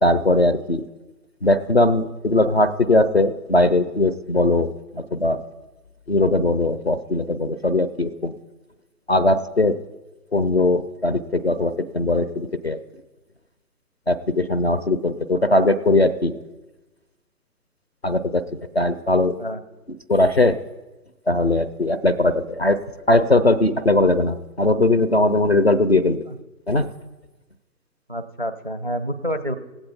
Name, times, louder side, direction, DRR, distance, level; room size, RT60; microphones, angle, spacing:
voice 1, 0.0-0.9 1.4-5.4 6.1-8.3 9.1-9.8 10.3-12.8 14.1-16.3 18.0-18.4 18.7-19.4 20.1-20.6 21.3-22.8 23.1-26.2 26.7-26.9, left 2 dB, 45° left, 12 dB, 0.4 m, -19 dB
voice 2, 28.1-29.6, equal, 35° right, 10 dB, 0.4 m, -28 dB
18.0 x 7.8 x 4.2 m, 1.1 s
figure-of-eight pair, 140°, 48 cm